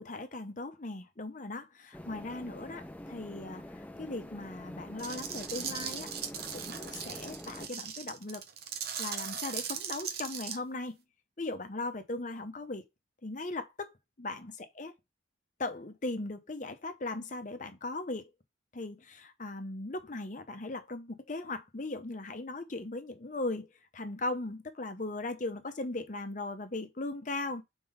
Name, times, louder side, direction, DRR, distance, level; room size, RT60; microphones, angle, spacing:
voice 1, 0.0-6.1 6.5-8.4 9.0-11.0 11.4-12.8 13.2-14.9 15.6-18.3 18.7-27.6, left 2 dB, 40° left, 0.8 m, -38 dB
sound 1, 1.9-7.7, left 1 dB, 10° left, 0.4 m, -46 dB
sound 2, 5.0-10.6, right 7 dB, 55° right, 0.9 m, -38 dB
4.4 x 3.8 x 5.6 m
head